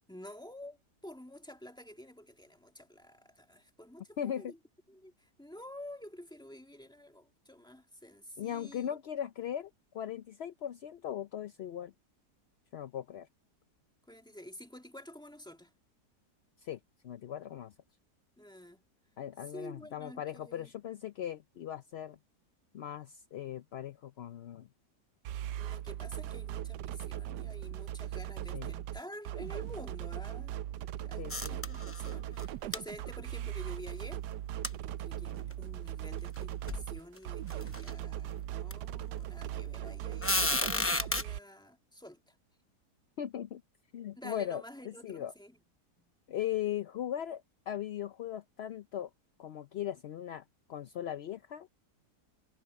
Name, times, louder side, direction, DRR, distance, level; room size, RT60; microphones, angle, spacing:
voice 1, 0.1-4.6 4.9-9.0 14.1-15.7 18.4-18.8 19.4-20.7 25.6-34.2 34.7-42.3 44.2-45.6 46.0-46.1, left 1 dB, 5° left, 2.2 m, -50 dB
voice 2, 4.2-4.5 8.4-11.9 12.7-13.3 16.6-17.7 19.2-22.2 22.7-24.7 28.5-28.7 31.2-31.6 43.2-43.6 43.9-45.3 46.3-49.1 49.4-51.7, left 10 dB, 65° left, 0.6 m, -39 dB
sound 1, 25.2-41.4, right 12 dB, 90° right, 1.2 m, -39 dB
sound 2, 31.3-32.1 32.4-32.5 32.7-32.8 34.6-34.7 35.5-35.6 36.4-36.5 36.7-36.9 37.5-37.9 38.7-38.8 40.2-41.2, left 2 dB, 20° left, 0.3 m, -31 dB
omnidirectional pair, 1.7 m